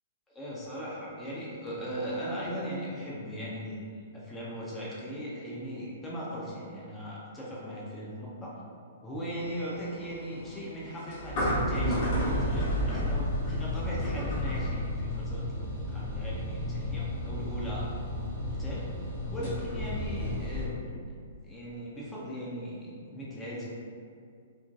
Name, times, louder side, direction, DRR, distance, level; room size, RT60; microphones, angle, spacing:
voice 1, 0.3-8.5 9.0-12.1 12.4-17.9 18.5-18.9 19.3-20.9 21.4-23.7, equal, 10° left, -6 dB, 0.5 m, -38 dB
sound 1, 9.3-20.7, left 1 dB, 35° left, 0.9 m, -32 dB
2.8 x 2.3 x 2.6 m, 2.3 s
figure-of-eight pair, 115°, 0 cm